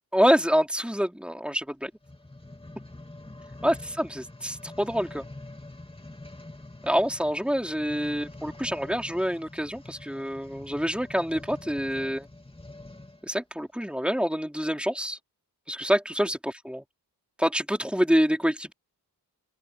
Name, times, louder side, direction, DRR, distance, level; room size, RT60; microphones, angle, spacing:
voice 1, 0.1-1.9 3.6-5.2 6.8-12.3 13.2-15.2 15.7-16.8 17.4-18.7, equal, 5° right, 3.6 m, -26 dB
sound 1, 1.9-13.3 13.9-14.0, left 2 dB, 15° left, 2.7 m, -45 dB
open air
wide cardioid pair, 80°, 39 cm